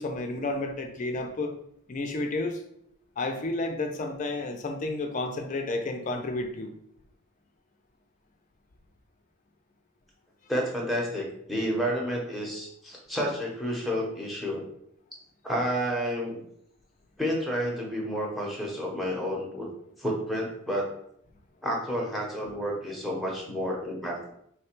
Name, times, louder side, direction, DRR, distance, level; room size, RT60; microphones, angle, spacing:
voice 1, 0.0-1.5 1.9-2.6 3.2-6.8, left 2 dB, 35° left, 5 dB, 0.4 m, -31 dB
voice 2, 10.5-14.6 15.4-16.4 17.2-19.7 20.0-20.9 21.6-24.3, equal, ahead, -2 dB, 0.8 m, -30 dB
3.2 x 2.2 x 4.3 m, 0.71 s
head